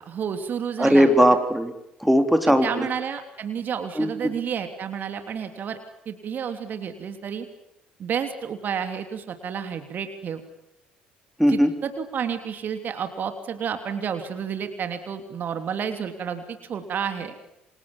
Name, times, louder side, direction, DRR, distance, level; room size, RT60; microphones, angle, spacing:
voice 1, 0.0-1.1 2.5-5.8 6.0-7.5 8.0-10.4 11.5-17.4, right 7 dB, 45° right, 8 dB, 3.0 m, -30 dB
voice 2, 0.8-1.7 2.0-2.9 4.0-4.1 11.4-11.7, equal, ahead, 6 dB, 3.6 m, -18 dB
29.0 x 26.0 x 7.3 m, 0.86 s
figure-of-eight pair, 50°, 4 cm